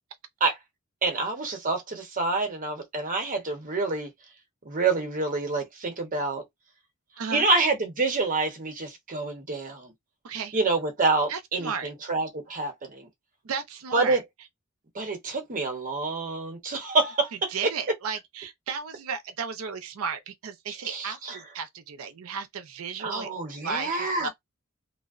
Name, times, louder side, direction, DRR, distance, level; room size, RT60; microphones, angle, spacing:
voice 1, 1.0-4.1 4.6-6.4 7.3-9.9 10.5-13.1 13.9-14.2 14.9-17.5 20.7-21.4 23.0-24.3, right 3 dB, 40° right, 0.8 m, -27 dB
voice 2, 10.2-10.6 11.3-11.9 13.4-14.2 17.5-23.3 23.6-24.3, right 6 dB, 70° right, 0.5 m, -34 dB
2.6 x 2.0 x 2.4 m
head